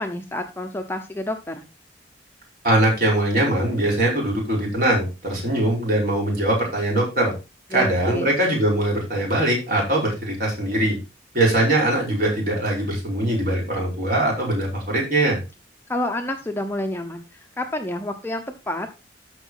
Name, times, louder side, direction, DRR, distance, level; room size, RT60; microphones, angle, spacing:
voice 1, 0.0-1.6 7.7-8.3 15.9-17.2 17.6-18.9, left 1 dB, 10° left, 5 dB, 0.8 m, -28 dB
voice 2, 2.6-7.3 7.7-11.0 11.3-15.4, right 1 dB, 50° right, -2 dB, 5.1 m, -21 dB
13.5 x 5.3 x 3.9 m, 0.28 s
head